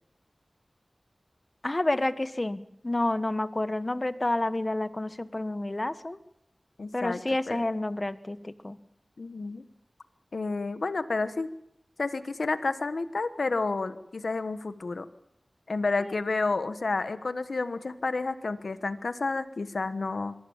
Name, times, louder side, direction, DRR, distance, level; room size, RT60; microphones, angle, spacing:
voice 1, 1.6-6.2 6.9-8.8 16.0-16.1, left 2 dB, 35° left, 13 dB, 1.3 m, -29 dB
voice 2, 6.8-7.2 7.5-7.6 9.2-9.6 10.3-11.5 12.0-15.1 15.7-20.3, left 3 dB, 85° left, 11 dB, 1.3 m, -30 dB
26.0 x 23.0 x 7.3 m, 0.80 s
wide cardioid pair, 70°, 0 cm